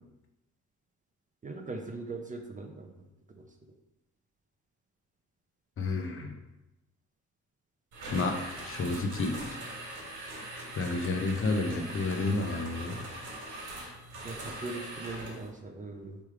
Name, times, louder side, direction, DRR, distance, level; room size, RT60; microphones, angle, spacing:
voice 1, 1.4-2.9 3.4-3.5 14.2-16.2, right 3 dB, 25° right, 4 dB, 0.5 m, -40 dB
voice 2, 5.8-6.3 8.1-8.4 8.6-9.3 10.8-13.0, left 3 dB, 45° left, 4 dB, 0.7 m, -30 dB
sound 1, 7.9-15.5, right 1 dB, 80° right, 1.5 m, -41 dB
3.3 x 3.1 x 4.8 m, 0.96 s
cardioid pair, 90°, 30 cm